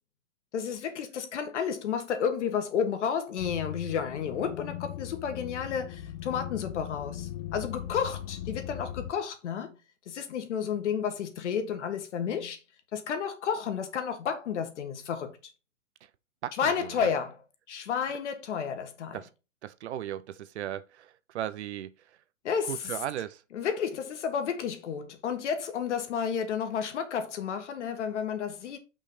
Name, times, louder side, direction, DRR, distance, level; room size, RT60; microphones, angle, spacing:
voice 1, 0.5-9.8 10.1-12.6 12.9-15.3 16.6-17.4 17.7-19.2 22.4-22.7 23.5-28.8, left 7 dB, 60° left, 1.6 m, -31 dB
sound 1, 3.4-9.1, left 12 dB, 30° left, 0.6 m, -39 dB
voice 2, 16.4-17.1 19.1-19.3 19.6-22.2 22.6-23.4, right 11 dB, 60° right, 0.7 m, -37 dB
5.6 x 4.1 x 4.9 m
hypercardioid pair, 160°, 39 cm